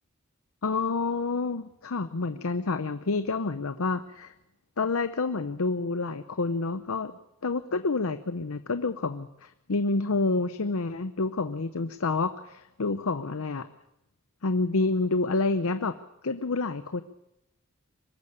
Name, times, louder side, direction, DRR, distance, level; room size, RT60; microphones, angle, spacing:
voice 1, 0.6-4.3 4.8-7.1 7.4-13.7 14.4-16.0 16.2-17.0, left 3 dB, 85° left, 11 dB, 0.8 m, -28 dB
23.0 x 13.5 x 8.5 m, 0.86 s
head